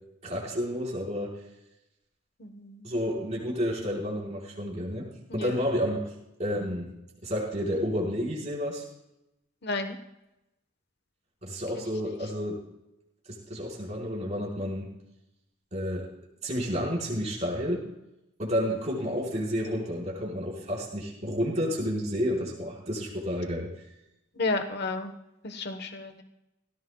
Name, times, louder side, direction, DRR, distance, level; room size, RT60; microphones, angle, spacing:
voice 1, 0.2-1.4 2.8-5.1 5.3-6.1 6.4-6.9 7.2-8.8 11.4-12.6 13.3-14.9 15.7-16.1 16.4-17.8 18.4-23.7, equal, 35° right, -4 dB, 4.8 m, -30 dB
voice 2, 2.4-2.9 5.3-5.5 9.6-10.0 11.8-11.9 24.4-25.1 25.4-26.2, left 3 dB, 55° left, 7 dB, 1.2 m, -32 dB
18.5 x 17.0 x 2.3 m, 0.89 s
head